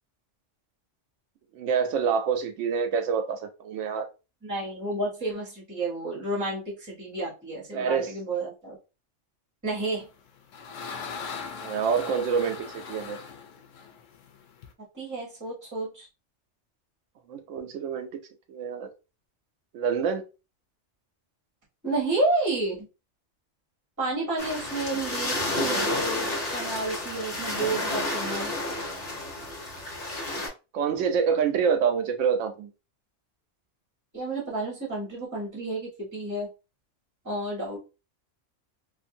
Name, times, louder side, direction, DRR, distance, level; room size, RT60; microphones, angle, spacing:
voice 1, 1.5-4.1 7.7-8.1 11.6-13.2 17.3-18.2 18.5-18.9 19.7-20.2 30.7-32.7, right 6 dB, 80° right, 0.9 m, -26 dB
voice 2, 4.4-8.8 9.6-10.1 14.9-16.1 21.8-22.9 24.0-28.5 34.1-36.5 37.2-37.8, right 2 dB, 15° right, 1.2 m, -30 dB
sound 1, 10.0-14.7, left 5 dB, 85° left, 0.9 m, -40 dB
sound 2, 24.4-30.5, left 1 dB, 50° left, 1.2 m, -30 dB
2.5 x 2.5 x 2.6 m
omnidirectional pair, 1.3 m